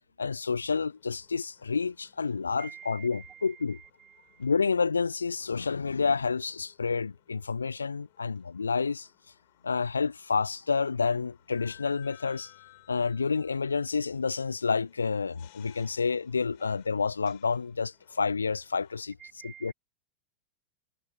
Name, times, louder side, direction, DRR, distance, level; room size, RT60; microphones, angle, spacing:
voice 1, 0.2-3.8 4.4-9.1 9.6-12.5 12.9-19.2 19.4-19.7, left 5 dB, 75° left, 0.6 m, -29 dB
sound 1, 0.7-19.0, left 24 dB, 50° left, 6.6 m, -60 dB
voice 2, 2.6-4.5 19.2-19.7, right 9 dB, 25° right, 2.2 m, -49 dB
figure-of-eight pair, 90°, 0 cm